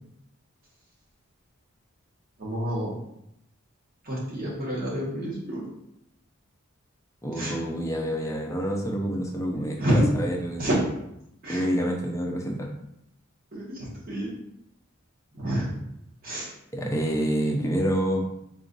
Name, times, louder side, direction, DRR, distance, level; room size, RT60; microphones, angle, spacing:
voice 1, 2.4-3.0 4.0-5.7 7.3-7.6 9.8-10.1 10.6-10.8 11.4-11.7 13.5-14.3 15.3-15.7 16.2-16.5, equal, 45° right, -5 dB, 1.1 m, -28 dB
voice 2, 7.2-10.6 11.5-12.7 16.7-18.3, equal, 15° left, 0 dB, 0.5 m, -27 dB
3.9 x 2.4 x 3.8 m, 0.80 s
head